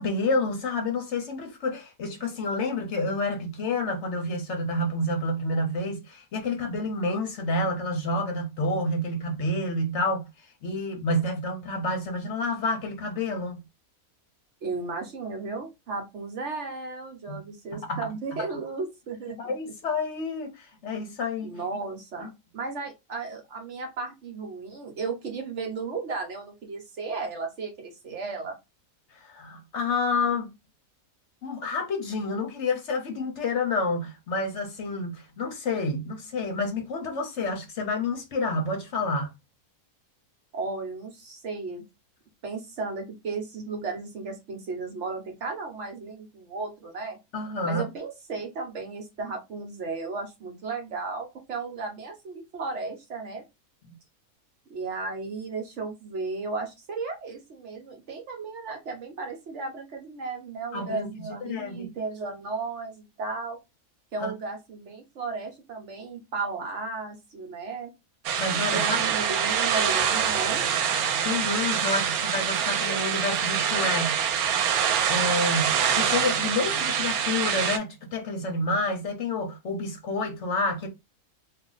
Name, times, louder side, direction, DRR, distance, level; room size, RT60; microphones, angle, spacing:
voice 1, 0.0-13.6 17.3-17.4 17.9-18.1 19.4-21.5 22.2-22.3 29.1-30.5 31.4-39.3 47.3-47.8 53.9-54.0 60.7-61.9 64.2-64.3 68.4-69.0 71.2-74.2 75.1-80.9, left 2 dB, 60° left, 0.9 m, -29 dB
voice 2, 14.6-19.5 21.4-22.3 22.5-28.6 40.5-41.8 42.4-47.2 47.6-53.4 54.7-63.6 64.1-67.9 68.5-70.6, right 4 dB, 60° right, 1.0 m, -34 dB
sound 1, 68.2-77.8, right 8 dB, 85° right, 1.0 m, -25 dB
2.4 x 2.4 x 3.8 m
omnidirectional pair, 1.5 m